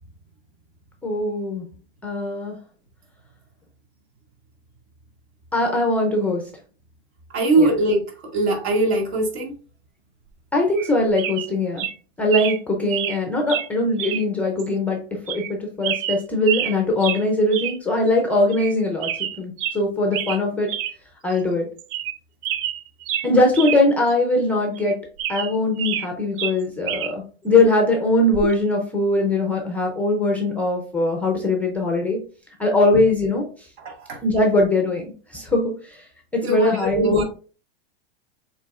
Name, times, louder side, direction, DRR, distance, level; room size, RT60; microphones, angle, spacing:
voice 1, 1.0-1.6 2.0-2.5 5.5-6.4 7.6-7.7 10.5-11.9 12.2-20.7 21.2-21.7 23.2-25.0 25.3-32.2 32.6-33.5 34.2-35.1 35.3-36.0 36.3-37.2, left 2 dB, 5° left, 0.4 m, -21 dB
voice 2, 7.3-9.5 33.8-34.2 36.4-37.2, right 2 dB, 75° right, 2.1 m, -21 dB
sound 1, 10.7-10.9 11.2-11.5 11.8-11.9 12.3-12.6 12.9-13.2 13.5-13.7 14.0-14.2 14.6-14.7 15.3-15.5 15.8-16.8 17.0-17.2 17.5-17.8 18.1-18.2 18.5-18.7 19.0-19.8 20.1-20.4 20.7-20.9 21.3-21.4 21.8-22.2 22.4-23.8 24.1-24.2 24.8-26.1 26.4-27.1 28.3-28.5, right 11 dB, 55° right, 0.5 m, -28 dB
6.9 x 3.0 x 2.4 m
supercardioid pair, 155°, 32 cm